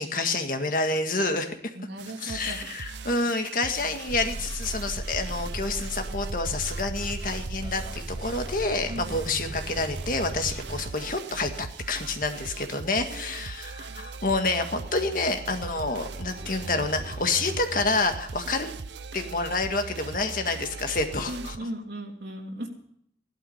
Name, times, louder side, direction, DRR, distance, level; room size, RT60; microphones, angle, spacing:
voice 1, 0.0-1.7 2.2-18.7 19.1-21.6, left 3 dB, 50° left, 6 dB, 1.8 m, -28 dB
voice 2, 1.8-2.6 8.9-9.2 13.1-13.2 21.3-22.7, right 1 dB, 75° right, 2 dB, 3.2 m, -37 dB
sound 1, 2.0-21.6, right 4 dB, 90° right, 0.7 m, -40 dB
sound 2, 4.1-10.9, right 1 dB, 25° right, 0.6 m, -36 dB
sound 3, 14.3-18.6, equal, 45° right, 5.2 m, -49 dB
16.5 x 12.0 x 5.7 m, 0.68 s
head